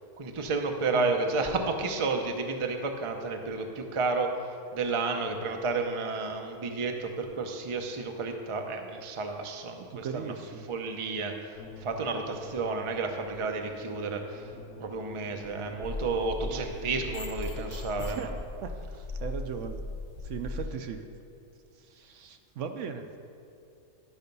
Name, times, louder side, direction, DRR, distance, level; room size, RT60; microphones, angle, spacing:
voice 1, 0.2-4.3 4.7-10.3 10.7-11.5 11.8-14.5 14.8-18.2, right 3 dB, 35° right, 4 dB, 0.5 m, -31 dB
voice 2, 9.9-10.7 16.4-16.9 18.0-18.3 18.6-19.8 20.2-21.1 21.8-23.1, right 7 dB, 70° right, 6 dB, 0.9 m, -38 dB
sound 1, 11.6-18.4, left 1 dB, 65° left, 1.1 m, -48 dB
sound 2, 15.8-20.7, left 2 dB, 45° left, 1.8 m, -38 dB
11.0 x 5.6 x 5.3 m, 2.6 s
omnidirectional pair, 1.4 m